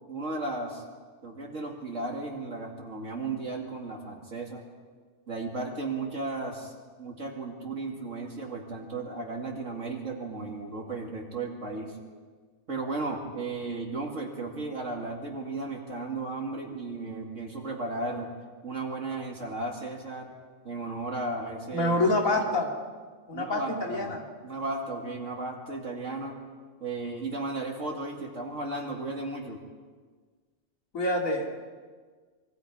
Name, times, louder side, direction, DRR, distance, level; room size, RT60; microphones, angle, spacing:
voice 1, 0.1-0.8 1.2-4.6 5.3-6.7 7.0-12.0 12.7-18.3 18.6-20.3 20.6-22.1 23.3-24.1 24.4-26.4 26.8-29.6, right 3 dB, 65° right, 0 dB, 2.6 m, -35 dB
voice 2, 21.7-22.7 23.3-24.2 30.9-31.5, left 2 dB, 85° left, 0 dB, 3.0 m, -26 dB
26.0 x 22.5 x 4.9 m, 1.5 s
omnidirectional pair, 1.4 m